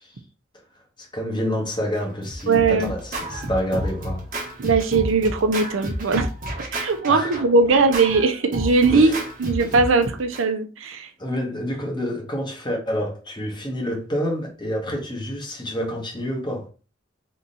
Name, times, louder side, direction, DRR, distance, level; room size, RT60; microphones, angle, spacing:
voice 1, 1.0-4.4 7.1-7.4 8.9-9.2 11.2-16.7, equal, 25° left, 1.3 m, -28 dB
Scratching (performance technique), 2.0-10.4, right 1 dB, 45° right, 1.2 m, -31 dB
voice 2, 2.5-2.9 4.6-6.3 6.7-9.1 9.4-11.1, right 4 dB, 85° right, 0.6 m, -19 dB
3.6 x 3.0 x 3.9 m
head